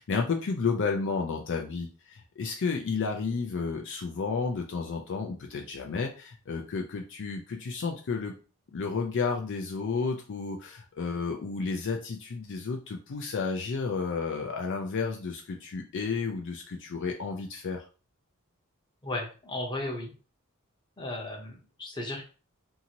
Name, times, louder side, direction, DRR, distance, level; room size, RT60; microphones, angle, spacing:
voice 1, 0.0-8.3 8.7-17.9, left 4 dB, 55° left, 2 dB, 0.4 m, -32 dB
voice 2, 19.0-20.1 21.0-22.2, left 2 dB, 20° left, 0 dB, 0.8 m, -35 dB
2.7 x 2.5 x 2.8 m, 0.36 s
head